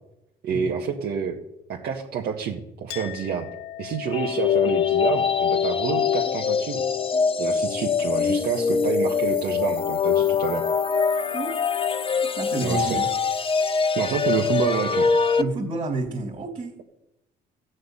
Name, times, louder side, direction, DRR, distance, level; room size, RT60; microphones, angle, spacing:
voice 1, 0.4-1.4 1.7-3.5 3.8-6.8 7.4-10.6 12.6-13.0 13.9-15.1, right 7 dB, 65° right, -1 dB, 1.7 m, -28 dB
Chink clink, 2.9-9.9, left 12 dB, 75° left, 1.4 m, -39 dB
sound 1, 4.1-15.4, left 6 dB, 30° left, 0.9 m, -23 dB
voice 2, 12.2-13.1 15.4-16.8, right 3 dB, 30° right, -3 dB, 2.6 m, -30 dB
14.0 x 6.4 x 10.0 m, 0.88 s
cardioid pair, 110°, 17 cm